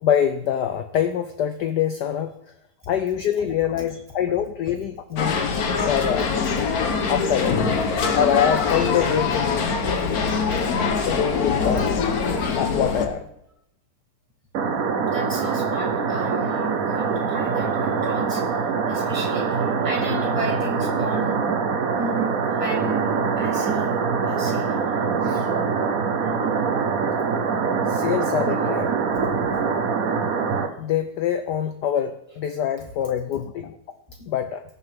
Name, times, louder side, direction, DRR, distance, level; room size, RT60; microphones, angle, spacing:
voice 1, 0.0-2.3 2.9-5.5 5.9-6.3 7.1-7.7 8.1-9.7 11.1-12.1 12.6-13.3 25.2-25.5 27.9-28.9 30.8-33.8 34.3-34.6, left 9 dB, 80° left, 9 dB, 0.9 m, -24 dB
sound 1, 5.2-13.1, left 5 dB, 55° left, 1.3 m, -23 dB
sound 2, 14.5-30.7, right 5 dB, 55° right, 1.0 m, -24 dB
voice 2, 15.1-18.4 18.9-21.5 22.0-23.9 24.2-24.7, right 2 dB, 15° right, -2 dB, 2.4 m, -33 dB
19.5 x 6.8 x 3.5 m, 0.80 s
omnidirectional pair, 2.4 m